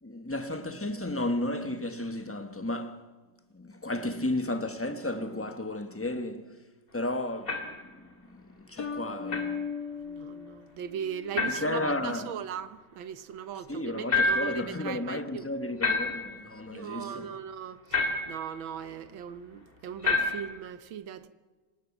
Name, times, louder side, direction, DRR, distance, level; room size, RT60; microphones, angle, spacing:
voice 1, 0.0-3.1 3.5-6.6 6.9-9.7 11.3-12.3 13.5-17.4, left 1 dB, 10° left, 1.0 m, -33 dB
sound 1, 7.5-7.8 9.3-9.5 11.3-11.8 14.1-14.7 15.8-16.4 17.9-18.4 20.0-20.6, left 3 dB, 30° left, 2.7 m, -28 dB
sound 2, 8.8-11.4, left 5 dB, 55° left, 2.5 m, -37 dB
voice 2, 10.1-12.7 13.0-15.5 16.7-17.8 18.3-21.3, right 8 dB, 80° right, 1.9 m, -38 dB
27.0 x 18.5 x 7.2 m
omnidirectional pair, 2.1 m